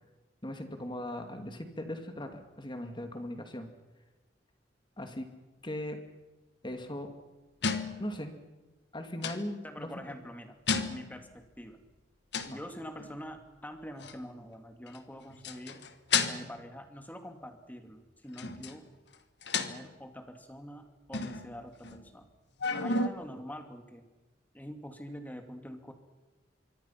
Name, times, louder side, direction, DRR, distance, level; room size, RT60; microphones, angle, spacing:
voice 1, 0.4-3.7 5.0-5.3 5.6-6.0 6.6-7.1 8.0-8.3 8.9-9.9 12.5-12.6, left 1 dB, 25° left, 6 dB, 2.4 m, -38 dB
sound 1, 7.6-8.2 9.2-9.5 10.7-11.2 12.3-12.6 13.0-13.2 14.0-14.2 14.9-15.0 15.3-16.7 18.4-18.8 19.1-19.2 19.4-19.9 21.1-22.2 22.6-23.1, left 4 dB, 70° left, 1.4 m, -32 dB
voice 2, 9.6-11.8 12.5-15.9 16.3-18.9 19.5-22.3 22.7-24.1 24.5-25.9, equal, 10° left, 6 dB, 2.4 m, -45 dB
25.0 x 24.0 x 5.8 m, 1.1 s
head